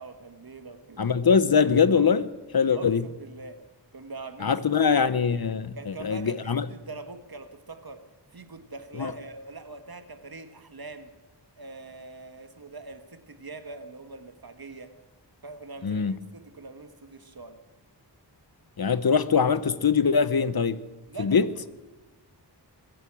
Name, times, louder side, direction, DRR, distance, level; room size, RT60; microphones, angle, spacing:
voice 1, 0.0-1.1 2.7-3.6 3.9-5.1 5.8-8.0 8.3-11.1 11.6-14.9 15.4-17.6 21.1-21.7, right 3 dB, 55° right, 1.7 m, -43 dB
voice 2, 1.0-3.0 4.4-6.7 9.0-9.1 15.8-16.2 18.8-20.8 21.2-21.5, left 6 dB, 55° left, 0.9 m, -23 dB
22.5 x 8.7 x 7.5 m
wide cardioid pair, 70°, 43 cm